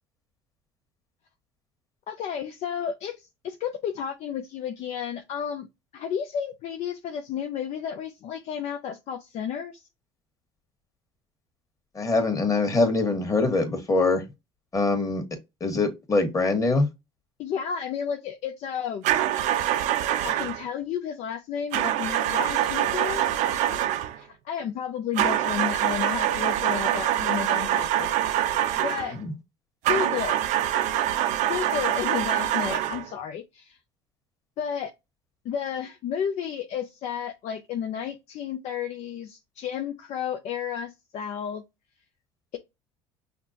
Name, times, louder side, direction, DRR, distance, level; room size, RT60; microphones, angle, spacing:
voice 1, 2.1-5.7 5.9-9.9 17.4-19.1 20.2-23.2 23.7-23.8 24.1-29.2 29.8-30.4 31.5-33.8 34.6-34.9 35.4-41.6, left 8 dB, 55° left, 0.6 m, -32 dB
voice 2, 11.9-14.2 14.7-15.2 15.6-16.9 29.2-29.3, left 3 dB, 25° left, 1.5 m, -23 dB
sound 1, 19.0-20.6 21.7-24.2 25.2-29.1 29.8-33.1, right 12 dB, 65° right, 0.5 m, -25 dB
5.7 x 2.1 x 2.7 m
hypercardioid pair, 75°, 13 cm